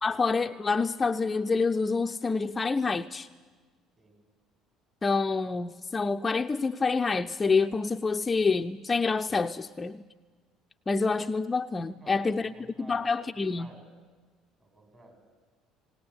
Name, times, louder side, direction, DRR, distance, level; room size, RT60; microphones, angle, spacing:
voice 1, 0.0-3.3 5.0-10.0 10.9-12.5 12.9-13.7, left 4 dB, 25° left, 7 dB, 0.6 m, -27 dB
voice 2, 11.9-13.1 13.5-13.8 14.6-15.2, right 1 dB, 30° right, 5 dB, 6.5 m, -53 dB
19.5 x 18.5 x 9.7 m, 1.4 s
supercardioid pair, 75°, 0 cm